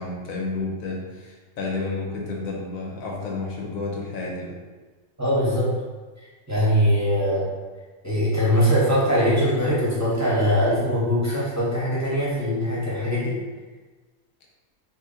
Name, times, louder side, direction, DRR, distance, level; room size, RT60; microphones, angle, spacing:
voice 1, 0.0-4.6, left 3 dB, 85° left, -1 dB, 1.1 m, -31 dB
voice 2, 5.2-5.8 6.5-7.5 8.0-13.4, equal, 15° right, -8 dB, 0.6 m, -22 dB
2.9 x 2.5 x 3.7 m, 1.3 s
omnidirectional pair, 1.4 m